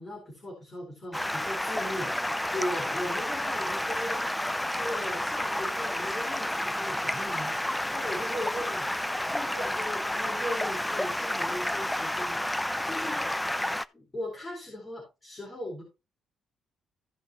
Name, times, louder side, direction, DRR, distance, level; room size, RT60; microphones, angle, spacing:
voice 1, 0.0-4.3 4.7-7.5 7.9-8.9 9.2-13.6 13.9-15.8, left 1 dB, 25° left, -2 dB, 4.3 m, -38 dB
Stream, 1.1-13.8, left 1 dB, 5° left, 0.5 m, -30 dB
16.0 x 5.6 x 2.9 m, 0.27 s
cardioid pair, 90°, 0 cm